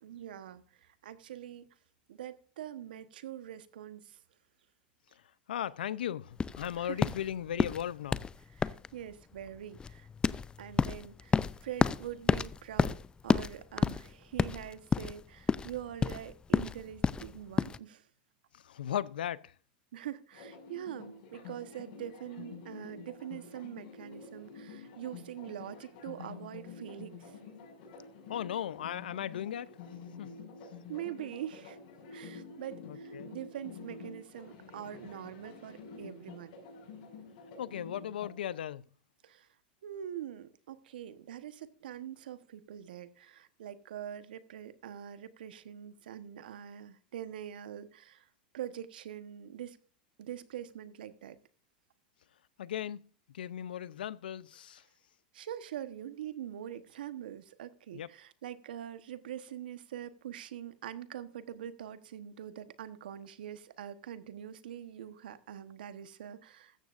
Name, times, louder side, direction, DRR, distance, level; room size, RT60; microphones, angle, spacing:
voice 1, 0.0-1.6 2.1-4.2 6.8-7.0 8.5-10.1 10.6-13.0 13.2-18.1 19.9-27.4 30.9-31.8 32.1-36.6 39.2-39.5 39.8-48.3 48.5-49.8 50.2-51.4 55.3-66.8, right 10 dB, 80° right, 1.1 m, -44 dB
voice 2, 5.5-8.2 18.5-19.5 28.3-29.7 30.2-30.3 32.9-33.3 37.6-38.8 52.6-53.1 53.3-54.8 57.9-58.1, left 10 dB, 85° left, 0.6 m, -37 dB
sound 1, 6.4-17.8, left 5 dB, 20° left, 0.5 m, -31 dB
sound 2, 20.3-38.3, left 4 dB, 65° left, 6.0 m, -48 dB
15.5 x 14.0 x 2.5 m
hypercardioid pair, 105°, 5 cm